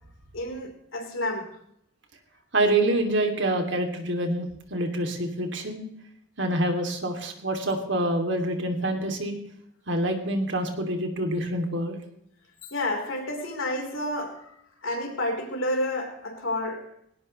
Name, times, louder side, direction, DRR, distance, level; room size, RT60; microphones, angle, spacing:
voice 1, 0.3-1.5 12.7-14.5 14.8-16.8, left 1 dB, 80° left, 1 dB, 4.1 m, -30 dB
voice 2, 2.5-5.8 6.4-9.4 9.9-12.0, right 1 dB, 60° right, 4 dB, 2.7 m, -26 dB
19.5 x 18.0 x 3.2 m, 0.71 s
head